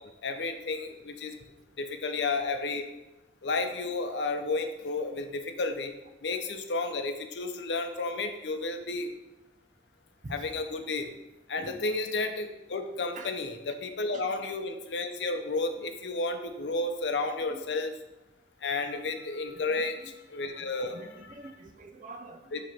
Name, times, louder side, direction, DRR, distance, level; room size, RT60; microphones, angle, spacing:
voice 1, 0.2-1.4 1.8-2.9 3.4-5.9 6.2-9.1 10.3-11.1 11.5-17.9 18.6-21.3 22.5-22.6, left 3 dB, 85° left, 7 dB, 0.7 m, -32 dB
voice 2, 11.6-12.0 13.1-13.3 14.1-14.2 17.4-17.7 19.6-20.1 20.9-22.6, right 2 dB, 45° right, 6 dB, 0.6 m, -46 dB
8.8 x 3.0 x 4.4 m, 1.0 s
head